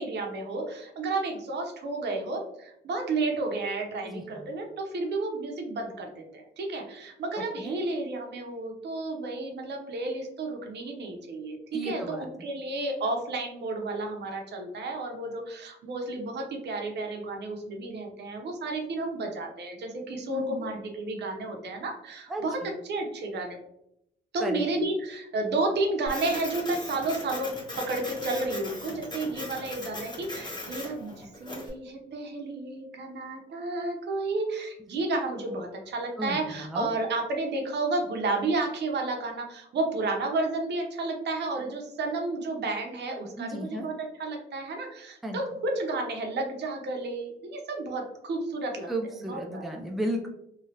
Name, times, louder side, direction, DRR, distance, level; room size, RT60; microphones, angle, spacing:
voice 1, 0.0-23.6 24.3-48.9 49.2-49.6, right 2 dB, 60° right, 2 dB, 0.8 m, -32 dB
voice 2, 4.0-4.5 7.6-7.8 11.7-12.3 20.3-20.7 22.3-22.7 24.4-24.6 36.2-36.9 43.4-43.9 45.2-45.4 48.9-50.3, right 1 dB, ahead, 1 dB, 0.4 m, -34 dB
Printer, 26.1-31.7, left 1 dB, 20° left, 0.9 m, -39 dB
3.1 x 2.4 x 2.8 m, 0.79 s
cardioid pair, 90°, 20 cm